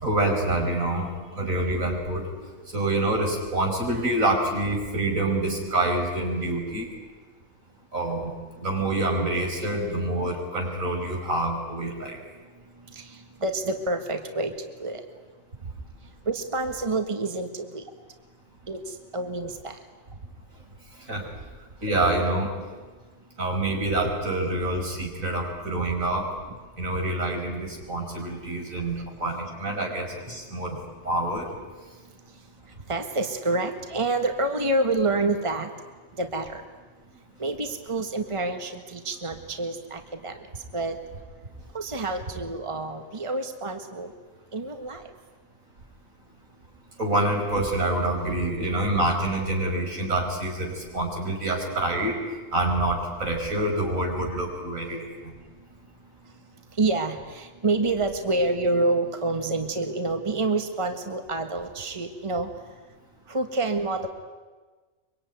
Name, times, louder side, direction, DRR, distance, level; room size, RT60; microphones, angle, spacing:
voice 1, 0.0-2.3 2.7-6.9 7.9-8.3 8.6-12.2 21.1-21.2 21.8-22.5 23.4-26.3 26.8-30.8 31.0-31.5 47.0-52.2 52.5-55.3, right 2 dB, 85° right, 1 dB, 5.6 m, -26 dB
voice 2, 13.4-14.5 14.8-15.0 16.3-17.8 18.7-18.8 19.1-19.7 32.9-35.7 36.2-36.6 37.4-40.4 40.7-41.0 41.7-44.1 44.5-45.0 56.8-62.5 63.3-64.1, right 2 dB, 25° right, 6 dB, 1.7 m, -27 dB
24.5 x 23.5 x 9.5 m, 1.4 s
omnidirectional pair, 1.4 m